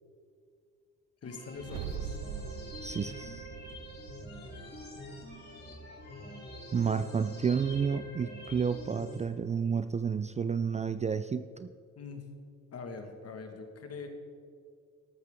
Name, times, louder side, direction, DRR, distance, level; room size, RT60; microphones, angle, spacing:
voice 1, 1.2-2.2 12.0-12.3 12.7-14.1, left 4 dB, 55° left, 5 dB, 1.8 m, -43 dB
sound 1, 1.2-9.2, equal, 35° left, 3.3 m, -45 dB
sound 2, 1.6-5.9, right 8 dB, 85° right, 0.6 m, -43 dB
voice 2, 2.8-3.3 6.7-11.7, right 6 dB, 25° right, 12 dB, 0.4 m, -31 dB
13.0 x 12.0 x 3.7 m, 2.2 s
cardioid pair, 90°, 30 cm